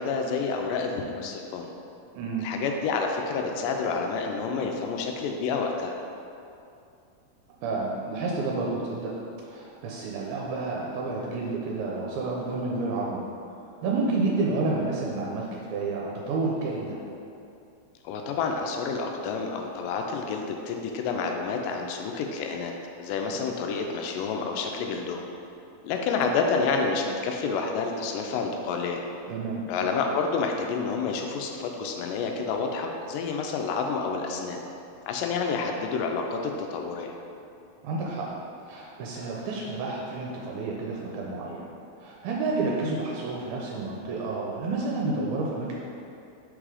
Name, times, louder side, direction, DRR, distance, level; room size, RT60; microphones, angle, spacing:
voice 1, 0.0-1.7 2.4-6.0 18.0-22.7 23.0-25.3 25.8-29.1 29.7-34.6 35.1-37.1, left 4 dB, 80° left, 2 dB, 2.0 m, -29 dB
voice 2, 2.2-2.5 7.6-9.1 9.4-13.2 13.8-17.0 29.3-29.7 37.8-38.3 38.7-41.6 42.0-45.7, right 3 dB, 85° right, -3 dB, 2.4 m, -30 dB
5.4 x 3.7 x 4.8 m, 2.6 s
omnidirectional pair, 4.3 m